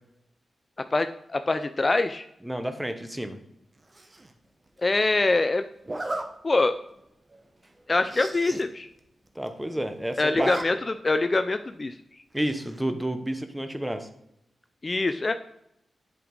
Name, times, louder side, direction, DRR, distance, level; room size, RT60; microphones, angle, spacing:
voice 1, 0.9-2.3 4.8-5.7 6.4-6.7 7.9-8.9 10.2-12.0 14.8-15.3, left 3 dB, 35° left, 10 dB, 0.4 m, -24 dB
voice 2, 2.4-3.4 9.3-10.5 12.3-14.1, right 1 dB, 5° right, 8 dB, 0.9 m, -30 dB
Zipper (clothing), 3.9-4.3 5.8-6.2 6.8-7.0 7.3-7.4 7.6-7.7 8.0-8.6 9.0-9.1 9.3-9.8 10.1-10.6 11.0-11.1 12.4-12.8, right 2 dB, 30° right, 1.0 m, -33 dB
7.6 x 5.1 x 3.9 m, 0.78 s
cardioid pair, 60°, 0 cm